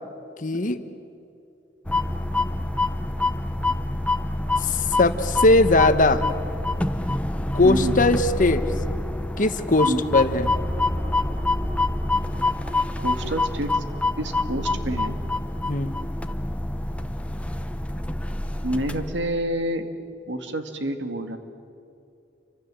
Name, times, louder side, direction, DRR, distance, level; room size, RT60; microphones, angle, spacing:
voice 1, 0.4-0.8 4.6-6.3 7.5-8.6 9.4-10.5 15.6-15.9, left 2 dB, 45° left, 10 dB, 1.3 m, -20 dB
sound 1, 1.9-19.3, left 2 dB, 5° left, 1.0 m, -26 dB
voice 2, 7.6-8.0 9.8-10.1 13.0-13.8 14.2-15.2 18.6-19.9 20.3-21.4, right 1 dB, 80° right, 7 dB, 2.1 m, -28 dB
29.5 x 25.0 x 7.7 m, 2.6 s
head